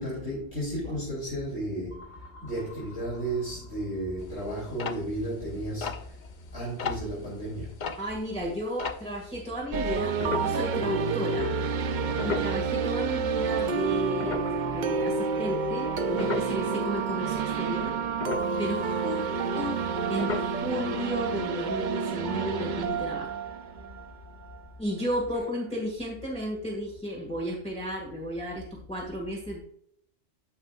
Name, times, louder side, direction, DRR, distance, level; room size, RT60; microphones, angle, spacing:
voice 1, 0.0-2.1 2.4-5.9 6.5-7.7, right 1 dB, 70° left, 3.3 m, -33 dB
sound 1, 1.9-4.5, left 2 dB, 80° right, 3.1 m, -53 dB
sound 2, 4.2-9.4 10.2-11.2 11.5-11.7 12.1-13.4 13.8-16.7 17.1-17.6 17.9-19.9 20.2-21.0 21.3-21.4 21.6-21.9 22.2-22.3, left 5 dB, 50° left, 0.7 m, -36 dB
voice 2, 8.0-11.5 12.2-18.0 18.6-19.3 19.5-19.8 20.1-23.3 24.8-29.6, equal, 5° left, 1.8 m, -33 dB
sound 3, 9.7-24.6, right 5 dB, 55° right, 0.5 m, -29 dB
13.5 x 5.3 x 2.4 m
omnidirectional pair, 1.2 m